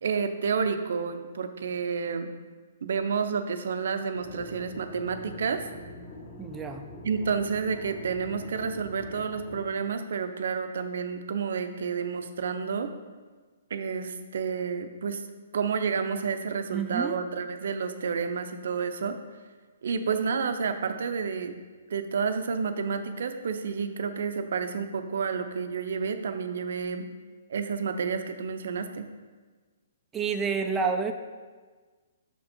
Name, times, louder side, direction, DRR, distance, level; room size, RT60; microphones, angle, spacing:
voice 1, 0.0-2.3 2.8-5.6 7.0-12.9 13.7-15.2 15.5-19.2 19.8-21.5 21.9-27.1 27.5-29.0, right 5 dB, 70° right, 8 dB, 0.5 m, -30 dB
sound 1, 4.1-9.6, left 1 dB, 25° left, 1.3 m, -44 dB
voice 2, 6.4-6.8 16.7-17.2 30.1-31.1, right 5 dB, 15° right, 4 dB, 0.3 m, -29 dB
6.0 x 4.3 x 4.2 m, 1.4 s
hypercardioid pair, 145°, 0 cm